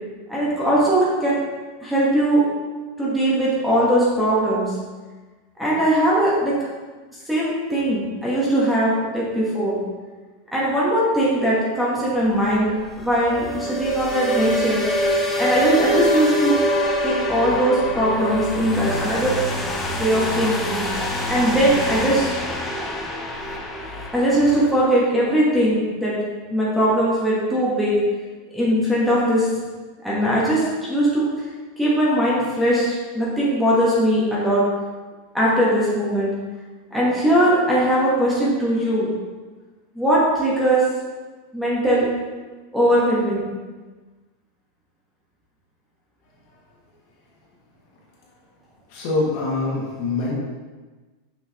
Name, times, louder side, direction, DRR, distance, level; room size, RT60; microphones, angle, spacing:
voice 1, 0.3-1.4 1.8-2.4 3.0-4.7 5.6-6.5 7.3-9.8 10.5-14.8 15.4-16.5 17.0-19.4 19.9-20.8 21.3-22.4 24.1-26.2 26.5-28.0 28.5-29.5 30.0-31.2 31.8-34.6 35.3-36.3 36.9-39.1 39.9-40.8 41.5-42.1 42.7-43.4, right 1 dB, 5° right, -7 dB, 1.3 m, -20 dB
sound 1, 12.2-24.7, equal, 15° left, 0.7 m, -25 dB
voice 2, 48.9-50.3, left 3 dB, 50° left, -4 dB, 1.8 m, -24 dB
6.3 x 5.5 x 3.0 m, 1.3 s
supercardioid pair, 160°, 0 cm